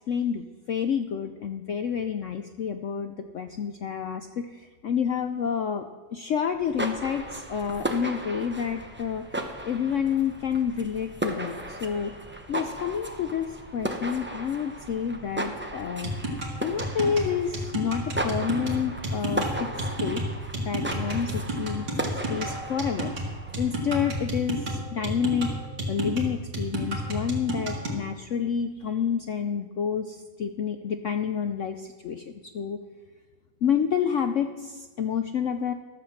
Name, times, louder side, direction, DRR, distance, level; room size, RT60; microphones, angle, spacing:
voice 1, 0.1-5.8 6.1-9.4 9.7-12.1 12.5-16.1 16.6-20.2 20.6-21.9 22.3-23.1 23.6-25.5 25.9-32.2 32.5-32.8 33.6-35.7, left 7 dB, 70° left, 7 dB, 0.7 m, -29 dB
sound 1, 6.5-23.9, right 1 dB, 15° right, 0.4 m, -36 dB
sound 2, 16.0-28.0, right 1 dB, 75° right, 2.5 m, -31 dB
13.5 x 7.7 x 6.4 m, 1.3 s
omnidirectional pair, 2.0 m